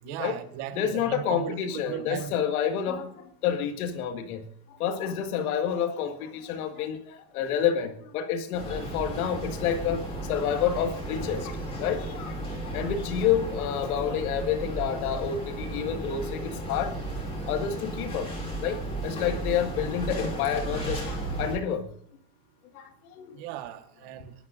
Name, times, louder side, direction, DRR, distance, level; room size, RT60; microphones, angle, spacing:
voice 1, 0.0-2.3 23.3-24.3, right 11 dB, 45° right, 8 dB, 1.5 m, -37 dB
voice 2, 0.7-4.4 4.8-10.0 10.3-12.3 12.6-17.0 17.5-18.3 18.6-21.8 22.7-22.9 23.2-23.4, left 8 dB, 65° left, 6 dB, 2.1 m, -29 dB
sound 1, 8.5-21.6, right 1 dB, 10° left, 2.7 m, -34 dB
25.5 x 11.0 x 2.6 m, 0.62 s
supercardioid pair, 165°, 46 cm